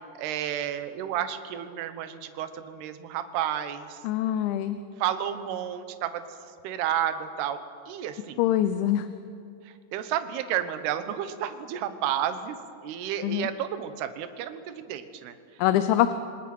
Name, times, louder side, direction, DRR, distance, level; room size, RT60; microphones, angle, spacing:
voice 1, 0.2-4.0 5.0-6.4 6.6-8.4 9.6-15.6, right 10 dB, 70° right, 10 dB, 3.0 m, -31 dB
voice 2, 4.0-4.8 8.4-9.1 13.2-13.5 15.6-16.1, left 12 dB, 85° left, 10 dB, 3.2 m, -24 dB
27.5 x 25.0 x 6.1 m, 2.4 s
omnidirectional pair, 5.2 m